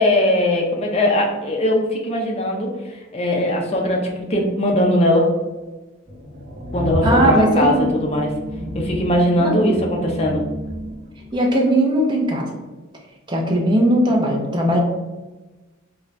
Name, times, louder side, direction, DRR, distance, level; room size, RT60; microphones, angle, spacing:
voice 1, 0.0-2.7 3.1-5.3 6.7-8.3 8.7-10.4, left 1 dB, 30° left, 0 dB, 0.5 m, -19 dB
sound 1, 6.1-11.4, equal, 45° right, 0.9 m, -29 dB
voice 2, 7.0-7.9 9.4-9.7 11.3-12.5 13.3-14.8, right 1 dB, 20° right, 0 dB, 0.5 m, -18 dB
3.9 x 2.3 x 3.2 m, 1.2 s
head